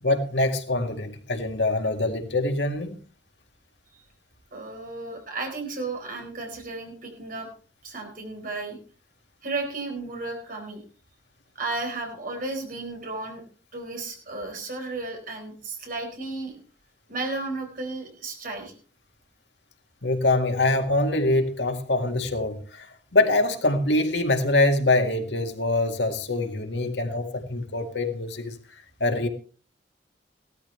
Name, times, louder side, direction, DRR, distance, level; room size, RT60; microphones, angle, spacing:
voice 1, 0.0-3.0 20.0-28.5 29.0-29.3, left 2 dB, 90° left, 2.0 m, -24 dB
voice 2, 4.5-7.5 7.8-8.8 9.4-10.8 11.5-13.4 13.7-16.6 17.1-18.7, right 3 dB, 55° right, 4.5 m, -33 dB
16.5 x 13.0 x 3.3 m
head